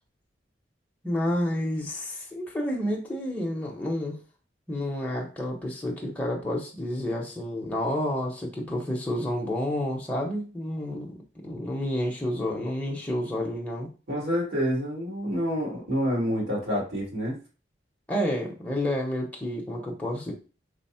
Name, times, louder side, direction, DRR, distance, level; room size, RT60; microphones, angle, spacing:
voice 1, 1.0-4.2 4.7-11.2 11.4-13.9 18.1-20.3, left 1 dB, 10° left, -2 dB, 0.6 m, -30 dB
voice 2, 14.1-17.4, equal, 85° right, -3 dB, 2.0 m, -28 dB
3.4 x 2.0 x 4.2 m, 0.34 s
head